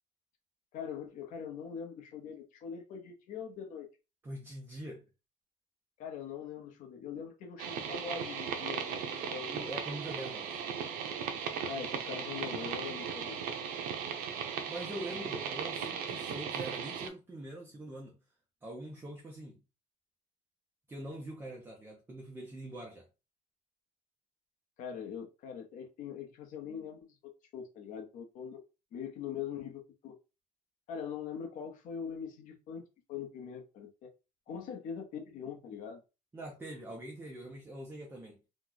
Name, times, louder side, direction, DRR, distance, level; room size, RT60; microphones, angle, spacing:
voice 1, 0.7-3.9 6.0-9.7 11.6-13.4 24.8-28.6 28.9-30.1 30.9-34.1 34.5-36.0, left 7 dB, 60° left, 0.9 m, -42 dB
voice 2, 4.2-5.1 9.5-10.6 14.7-18.2 18.6-19.6 20.9-23.1 36.3-38.4, right 1 dB, 15° right, 0.6 m, -43 dB
sound 1, 7.6-17.1, right 7 dB, 80° right, 0.6 m, -37 dB
3.0 x 2.3 x 3.9 m
cardioid pair, 170°, 15 cm